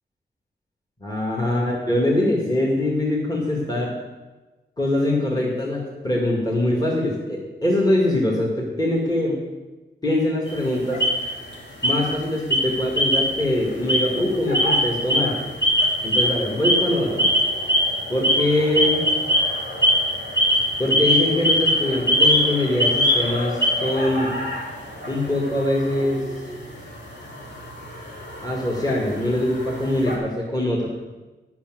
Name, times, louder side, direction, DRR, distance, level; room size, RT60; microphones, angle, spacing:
voice 1, 1.0-3.9 4.8-9.4 10.0-11.0 11.8-15.3 16.0-17.3 18.1-19.1 20.8-24.3 25.1-26.2 28.4-30.9, left 1 dB, 20° left, -3 dB, 1.9 m, -23 dB
sound 1, 10.5-11.5 11.8-12.2 12.5-13.5 13.8-30.2, equal, 80° left, 2.8 m, -23 dB
10.0 x 6.1 x 7.6 m, 1.2 s
wide cardioid pair, 130°, 18 cm